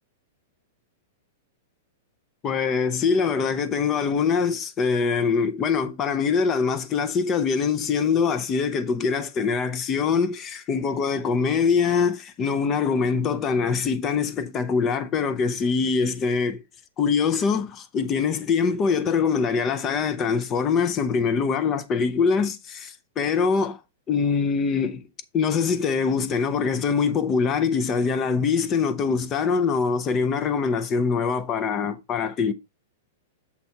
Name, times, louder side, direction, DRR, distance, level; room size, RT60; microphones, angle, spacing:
voice 1, 2.4-16.6 17.0-23.8 24.1-25.0 25.3-32.5, left 5 dB, 20° left, 0.5 m, -23 dB
7.1 x 4.0 x 4.4 m
supercardioid pair, 170°, 0 cm